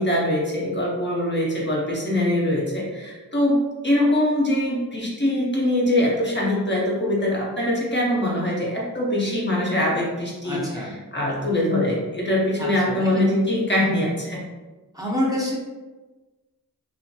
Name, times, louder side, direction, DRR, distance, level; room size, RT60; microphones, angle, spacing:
voice 1, 0.0-10.9 11.1-14.4, left 1 dB, 30° left, -3 dB, 0.6 m, -23 dB
voice 2, 10.4-11.0 12.6-13.3 14.9-15.6, left 1 dB, 10° right, -5 dB, 0.6 m, -27 dB
2.4 x 2.3 x 2.6 m, 1.2 s
cardioid pair, 45°, 37 cm